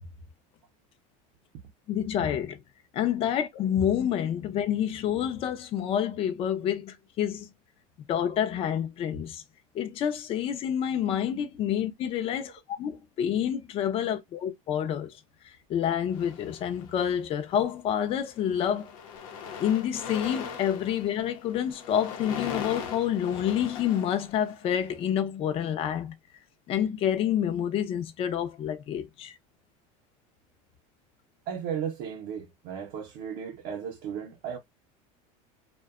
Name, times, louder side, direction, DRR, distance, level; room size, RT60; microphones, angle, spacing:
voice 1, 1.9-2.6 2.9-7.5 8.1-9.4 9.7-15.1 15.7-18.9 19.6-26.1 26.7-29.3, left 9 dB, 35° left, 0.5 m, -28 dB
sound 1, 16.1-17.1 17.9-18.1 18.4-24.9, left 7 dB, 90° left, 0.7 m, -40 dB
voice 2, 31.5-34.6, right 8 dB, 60° right, 0.6 m, -35 dB
2.6 x 2.2 x 2.3 m
cardioid pair, 145°, 17 cm